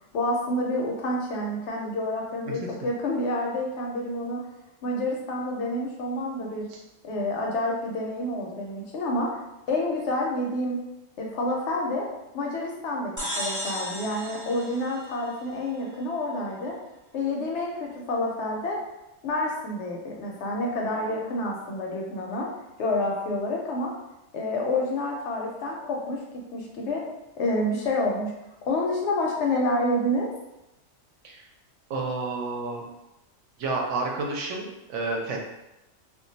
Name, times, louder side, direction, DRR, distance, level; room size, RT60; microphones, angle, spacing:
voice 1, 0.1-4.4 4.8-6.7 7.0-9.3 9.7-10.8 11.2-12.0 12.3-16.7 17.1-18.8 19.2-22.5 22.8-23.9 24.3-27.0 27.4-28.3 28.7-30.3, left 1 dB, 65° left, -1 dB, 0.8 m, -28 dB
sound 1, 13.2-15.8, equal, 25° right, 0.4 m, -35 dB
voice 2, 31.9-32.8 33.6-35.4, right 3 dB, 70° right, 0 dB, 0.9 m, -30 dB
2.3 x 2.2 x 3.8 m, 0.93 s
omnidirectional pair, 1.4 m